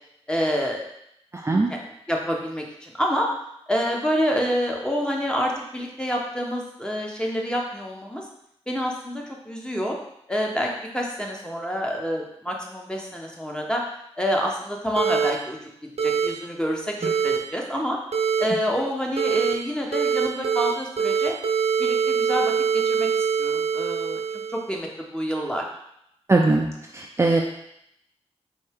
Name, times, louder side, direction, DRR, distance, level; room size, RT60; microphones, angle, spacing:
voice 1, 0.3-0.9 1.7-3.3 3.7-8.2 8.7-10.0 10.3-13.8 14.2-18.0 18.4-21.3 21.8-25.7, equal, 10° left, 0 dB, 0.8 m, -28 dB
voice 2, 1.3-1.7 26.3-26.7 26.9-27.4, right 3 dB, 25° right, 0 dB, 0.4 m, -20 dB
sound 1, 15.0-15.3 16.0-16.3 17.0-17.4 18.1-18.4 19.2-19.5 19.9-20.7 21.0-24.7, right 6 dB, 70° right, 0.7 m, -23 dB
4.3 x 2.8 x 3.5 m, 0.77 s
cardioid pair, 60°, 11 cm